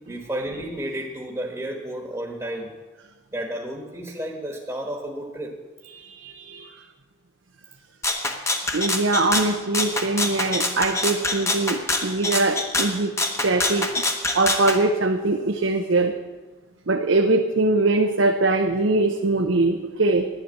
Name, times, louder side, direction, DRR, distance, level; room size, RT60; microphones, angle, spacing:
voice 1, 0.1-2.7 3.3-5.6, right 1 dB, 15° right, 0 dB, 1.3 m, -32 dB
voice 2, 5.9-6.7 8.7-14.1 14.3-16.1 16.9-20.3, right 2 dB, 70° right, 4 dB, 0.8 m, -22 dB
Rattle (instrument), 8.0-14.8, left 2 dB, 15° left, 1.0 m, -25 dB
10.5 x 10.0 x 8.2 m, 1.3 s
head